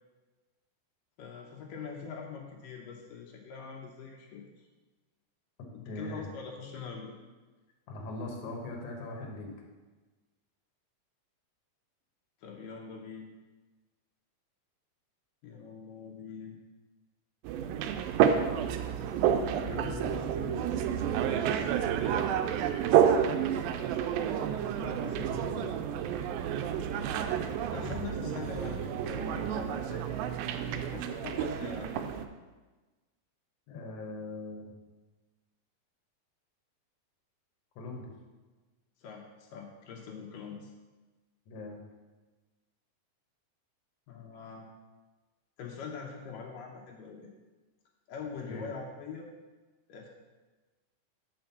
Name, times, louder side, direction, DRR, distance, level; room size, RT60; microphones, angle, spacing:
voice 1, 1.2-4.4 5.7-7.1 12.4-13.3 15.4-16.6 19.6-20.7 24.8-25.7 27.7-30.1 30.7-32.1 39.0-40.7 44.1-44.7 45.6-47.3 48.1-49.3 49.9-50.1, left 6 dB, 75° left, 0 dB, 2.5 m, -43 dB
voice 2, 5.9-6.3 7.9-9.5 33.7-34.7 37.8-38.1 41.5-41.8 48.5-48.6, left 2 dB, 60° left, 0 dB, 1.9 m, -40 dB
sound 1, 17.4-32.3, right 9 dB, 90° right, 2.3 m, -29 dB
5.9 x 4.9 x 6.7 m, 1.2 s
omnidirectional pair, 4.0 m